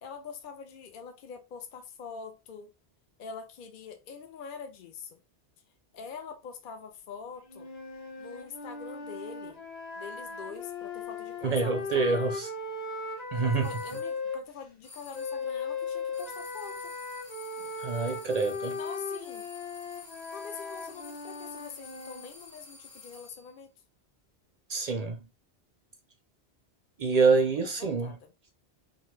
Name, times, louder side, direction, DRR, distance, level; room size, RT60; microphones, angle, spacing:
voice 1, 0.0-2.7 3.2-5.2 5.9-7.7 8.2-9.6 10.0-12.3 13.4-16.9 18.6-19.5 20.3-23.7 27.1-27.4 27.6-28.3, left 6 dB, 60° left, 0.7 m, -44 dB
sound 1, 7.5-14.4 15.1-22.3, left 4 dB, 40° left, 1.0 m, -37 dB
voice 2, 11.4-12.5 13.3-13.7 17.8-18.8 24.7-25.2 27.0-28.2, right 4 dB, 55° right, 0.4 m, -26 dB
sound 2, 13.6-14.1 14.8-15.5 16.1-23.5, left 3 dB, 20° left, 0.7 m, -51 dB
3.0 x 2.2 x 3.1 m
omnidirectional pair, 1.1 m